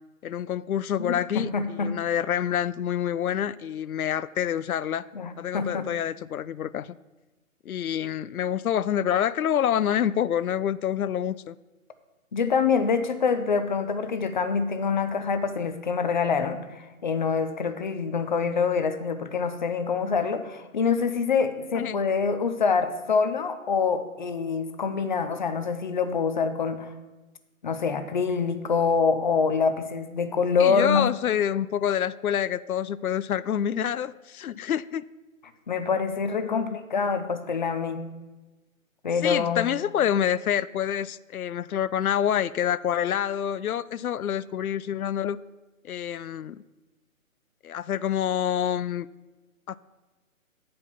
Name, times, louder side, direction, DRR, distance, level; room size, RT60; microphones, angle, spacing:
voice 1, 0.2-5.1 5.4-6.9 7.7-11.6 21.7-22.0 30.6-35.0 36.4-36.8 39.2-45.4 45.8-46.6 47.6-49.1 49.7-49.8, left 10 dB, 80° left, 18 dB, 0.5 m, -27 dB
voice 2, 1.0-1.9 5.1-5.9 12.3-26.9 27.6-31.1 35.7-38.0 39.0-39.7, left 5 dB, 35° left, 10 dB, 0.6 m, -25 dB
8.8 x 5.2 x 6.8 m, 1.2 s
figure-of-eight pair, 150°, 42 cm